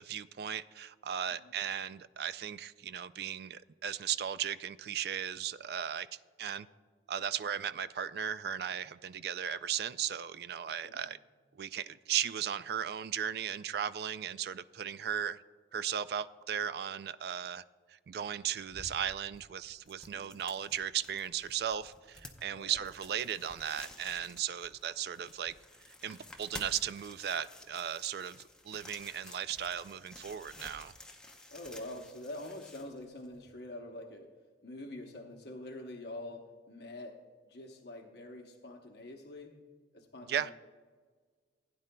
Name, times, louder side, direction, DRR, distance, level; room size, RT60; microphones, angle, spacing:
voice 1, 0.0-6.1 6.4-6.7 7.1-11.2 11.5-15.4 15.7-17.6 17.9-25.5 26.0-30.9 40.3-40.5, right 9 dB, 60° right, 0.3 m, -36 dB
sound 1, 18.4-33.5, left 1 dB, 5° left, 0.6 m, -52 dB
voice 2, 31.5-34.3 34.6-39.6 39.9-40.5, left 1 dB, 65° left, 0.9 m, -46 dB
16.0 x 9.5 x 2.2 m
head